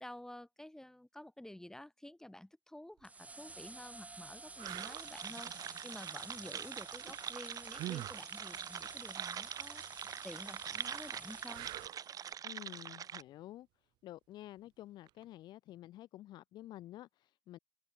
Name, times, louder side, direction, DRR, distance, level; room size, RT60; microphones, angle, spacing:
voice 1, 0.0-11.7, left 1 dB, 5° left, 6.2 m, -51 dB
sound 1, 3.0-12.3, right 3 dB, 20° right, 1.1 m, -52 dB
sound 2, 3.0-3.2 3.9-4.0 4.6-5.0 7.7-8.2 11.5-12.1 15.1-15.2, right 16 dB, 85° right, 0.5 m, -44 dB
sound 3, 4.6-13.2, right 8 dB, 55° right, 1.5 m, -44 dB
voice 2, 12.4-13.7 14.0-17.6, left 14 dB, 85° left, 1.9 m, -50 dB
cardioid pair, 90°, 7 cm